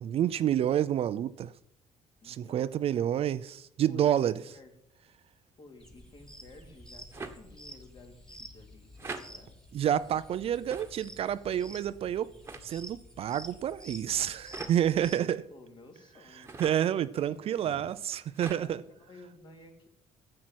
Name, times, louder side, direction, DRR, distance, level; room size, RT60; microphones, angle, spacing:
voice 1, 0.0-1.5 2.2-4.3 9.7-12.3 12.6-15.4 16.6-18.8, right 10 dB, 50° right, 0.5 m, -29 dB
voice 2, 2.2-2.8 3.9-4.7 5.6-9.6 14.1-14.4 14.9-16.7 17.1-17.8 18.1-19.9, left 2 dB, 40° left, 2.9 m, -54 dB
sound 1, 5.8-15.1, equal, 5° left, 1.7 m, -50 dB
sound 2, 7.1-7.4 9.0-9.2 10.7-11.0 12.4-12.6 14.5-14.7 16.4-16.8 18.3-18.6, right 3 dB, 20° right, 1.4 m, -41 dB
10.5 x 7.6 x 9.4 m
cardioid pair, 140°, 13 cm